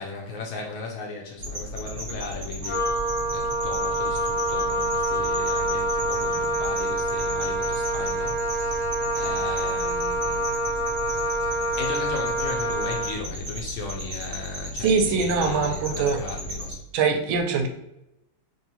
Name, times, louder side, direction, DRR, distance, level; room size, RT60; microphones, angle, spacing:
voice 1, 0.0-8.9 9.1-10.5 11.1-16.8, left 3 dB, 75° left, 0 dB, 1.2 m, -37 dB
sound 1, 1.4-16.7, equal, 45° right, 0.8 m, -35 dB
Wind instrument woodwind instrument, 2.6-13.2, right 1 dB, 40° left, 0.4 m, -26 dB
voice 2, 14.8-16.2 16.9-17.7, right 5 dB, 75° right, 4 dB, 1.4 m, -23 dB
3.6 x 3.0 x 2.7 m, 0.86 s
omnidirectional pair, 2.4 m